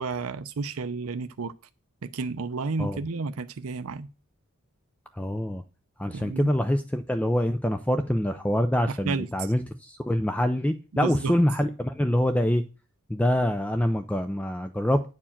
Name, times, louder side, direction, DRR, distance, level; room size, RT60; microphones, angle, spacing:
voice 1, 0.0-1.5 2.0-4.1 6.1-6.5 8.9-9.3 11.0-11.3, right 4 dB, 70° right, 0.6 m, -31 dB
voice 2, 5.1-5.6 6.0-12.6 13.1-15.1, equal, 5° left, 0.4 m, -25 dB
9.9 x 4.6 x 7.2 m
head